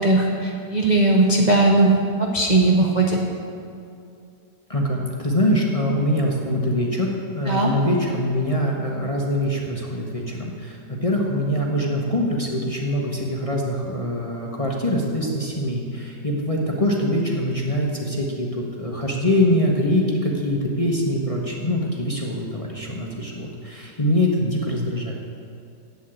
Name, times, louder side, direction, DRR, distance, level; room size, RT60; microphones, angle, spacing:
voice 1, 0.0-3.2 7.5-7.7, right 2 dB, 45° right, 0 dB, 0.5 m, -18 dB
voice 2, 4.7-25.1, left 1 dB, 25° left, -2 dB, 0.8 m, -23 dB
8.1 x 7.2 x 8.6 m, 2.4 s
omnidirectional pair, 1.9 m